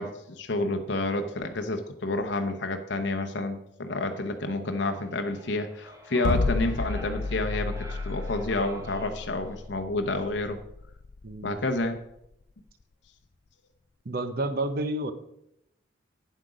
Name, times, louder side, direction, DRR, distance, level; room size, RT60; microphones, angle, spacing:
voice 1, 0.0-10.6 11.4-12.0, left 2 dB, 60° left, 6 dB, 0.7 m, -29 dB
sound 1, 4.7-9.7, right 1 dB, 15° right, 1.0 m, -48 dB
sound 2, 6.2-12.4, left 3 dB, 40° left, 0.3 m, -31 dB
voice 2, 11.2-11.6 14.0-15.1, right 2 dB, 50° right, 11 dB, 0.7 m, -30 dB
8.2 x 7.7 x 4.9 m, 0.80 s
head